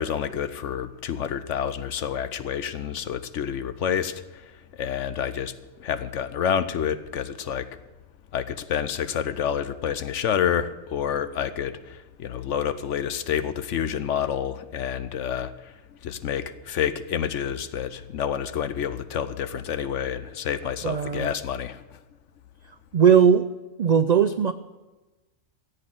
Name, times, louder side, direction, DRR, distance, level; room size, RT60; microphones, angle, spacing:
voice 1, 0.0-5.5 5.8-7.7 8.3-22.0, left 8 dB, 70° left, 13 dB, 1.1 m, -29 dB
voice 2, 20.8-21.3 22.9-23.5 23.8-24.5, right 7 dB, 70° right, 10 dB, 0.4 m, -18 dB
14.5 x 8.2 x 7.8 m, 1.1 s
omnidirectional pair, 1.3 m